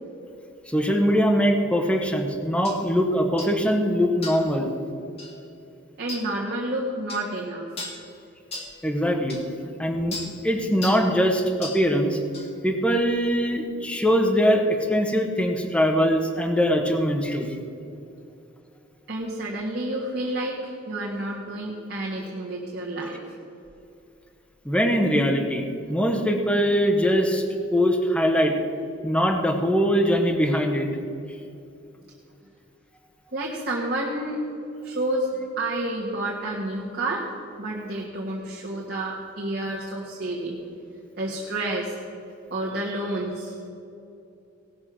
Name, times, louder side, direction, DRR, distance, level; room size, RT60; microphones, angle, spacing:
voice 1, 0.7-4.7 8.8-9.4 9.8-10.2 10.4-12.2 12.6-17.6 24.6-25.6 25.9-27.4 27.7-28.5 29.0-30.9, equal, 5° left, 3 dB, 1.1 m, -22 dB
sound 1, 2.7-2.8 3.4-3.6 4.2-4.5 5.2-5.4 6.1-6.3 7.1-7.3 7.8-8.0 8.5-8.7 9.3-9.4 10.1-10.3 10.8-11.1 11.6-11.8 12.3-12.5, left 3 dB, 30° left, 1.8 m, -36 dB
voice 2, 6.0-7.7 19.1-20.6 20.9-23.2 33.3-34.4 34.8-37.3 37.6-40.6 41.2-41.9 42.5-43.5, right 1 dB, 55° right, -4 dB, 1.6 m, -29 dB
18.0 x 6.5 x 6.2 m, 2.7 s
head